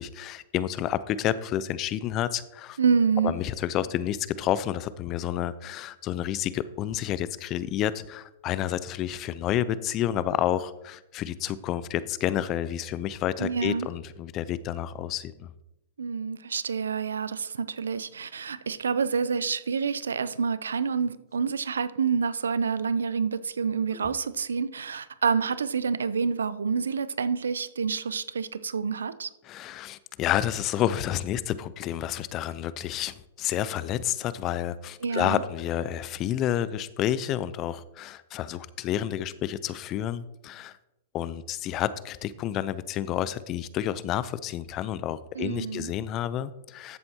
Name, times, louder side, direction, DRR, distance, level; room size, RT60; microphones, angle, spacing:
voice 1, 0.0-2.8 3.2-15.5 24.0-24.1 29.4-40.8 41.1-47.0, left 11 dB, 35° left, 0.5 m, -30 dB
voice 2, 2.8-3.4 13.4-13.9 16.0-29.3 35.0-35.4 45.4-45.9, right 6 dB, 85° right, 0.5 m, -28 dB
13.5 x 7.6 x 2.9 m
hypercardioid pair, 115°, 0 cm